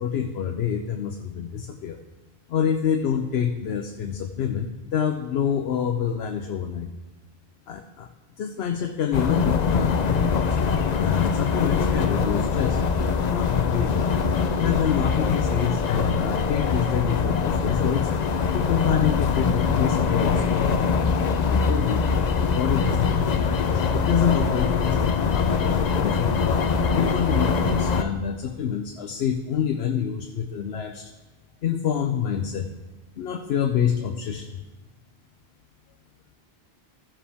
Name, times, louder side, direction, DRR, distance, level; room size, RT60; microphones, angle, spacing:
voice 1, 0.0-2.0 2.5-6.9 7.7-8.1 8.4-12.8 13.3-14.1 14.6-18.1 18.5-22.0 22.4-31.1 31.6-32.7 33.2-34.6, left 8 dB, 80° left, 5 dB, 0.9 m, -27 dB
sound 1, 9.1-28.0, left 5 dB, 50° left, 0.7 m, -23 dB
15.5 x 7.4 x 3.5 m, 1.2 s
omnidirectional pair, 1.0 m